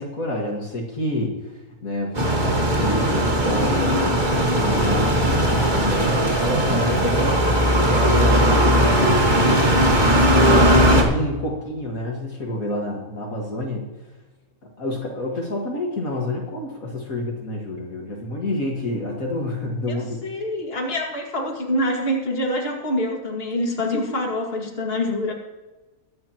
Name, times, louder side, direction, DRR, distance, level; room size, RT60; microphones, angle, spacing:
voice 1, 0.0-7.5 7.9-9.4 9.7-10.0 10.5-13.9 14.8-20.2 23.9-24.0, left 1 dB, 60° left, -1 dB, 2.2 m, -28 dB
sound 1, 2.1-11.0, equal, 30° right, 1.8 m, -18 dB
voice 2, 19.9-25.3, left 1 dB, 35° left, 0 dB, 2.4 m, -26 dB
22.5 x 9.3 x 3.0 m, 1.1 s
omnidirectional pair, 1.7 m